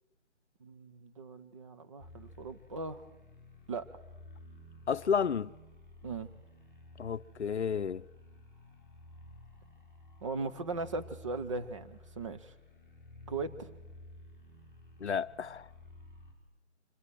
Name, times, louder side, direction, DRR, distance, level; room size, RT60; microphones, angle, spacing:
voice 1, 0.6-3.1 3.7-3.9 6.0-6.3 10.2-12.5 13.3-13.7, right 3 dB, 25° right, 0.8 m, -38 dB
sound 1, 2.0-16.3, left 2 dB, 5° right, 2.8 m, -53 dB
voice 2, 4.9-5.5 7.0-8.0 15.0-15.7, left 6 dB, 70° left, 0.7 m, -31 dB
25.0 x 23.0 x 4.7 m
figure-of-eight pair, 145°, 35 cm